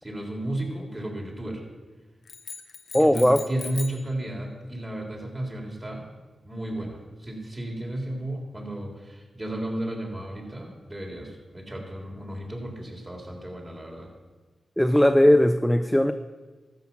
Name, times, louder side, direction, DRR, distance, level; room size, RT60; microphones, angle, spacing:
voice 1, 0.0-1.6 3.0-6.1 6.4-14.1, right 1 dB, 25° right, -1 dB, 3.8 m, -33 dB
sound 1, 2.3-4.1, left 5 dB, 65° left, 0.8 m, -40 dB
voice 2, 2.9-3.4 14.8-16.1, left 1 dB, 5° left, 7 dB, 0.6 m, -18 dB
13.5 x 5.8 x 7.3 m, 1.3 s
cardioid pair, 45°, 0 cm